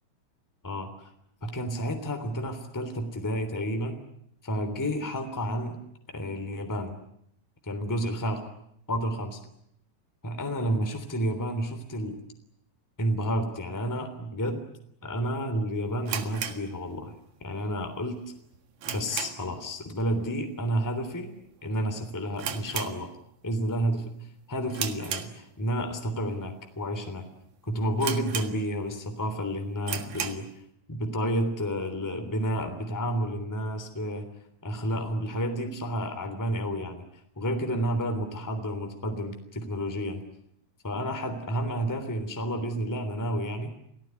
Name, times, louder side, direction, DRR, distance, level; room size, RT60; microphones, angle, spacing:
voice 1, 0.6-1.1 1.4-4.0 4.4-5.8 6.1-6.9 7.6-8.4 8.9-9.4 10.2-12.2 13.0-14.6 15.0-18.2 18.8-21.3 21.6-23.1 23.4-24.1 24.5-27.3 27.7-30.5 30.9-34.3 34.6-37.0 37.4-40.2 40.8-43.7, equal, 5° left, 6 dB, 2.5 m, -30 dB
sound 1, 16.0-17.4 17.7-17.8 18.3-19.6 19.9-20.2 20.5-20.6 21.3-21.6 21.8-21.9 22.3-23.5 23.9-24.2 24.7-25.8 26.4-26.5 27.1-27.2 27.4-27.5 28.0-29.0 29.3-29.4 29.8-30.5, right 8 dB, 55° right, 2.5 m, -35 dB
29.0 x 18.5 x 9.7 m, 0.74 s
omnidirectional pair, 4.9 m